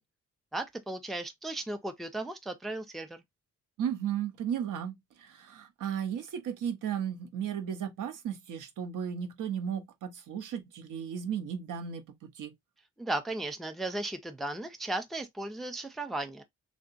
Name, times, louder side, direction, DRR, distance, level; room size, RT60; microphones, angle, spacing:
voice 1, 0.5-3.2 13.0-16.4, right 2 dB, ahead, 0.3 m, -36 dB
voice 2, 3.8-12.5, right 8 dB, 85° right, 0.8 m, -35 dB
3.7 x 2.2 x 2.5 m
wide cardioid pair, 170°, 31 cm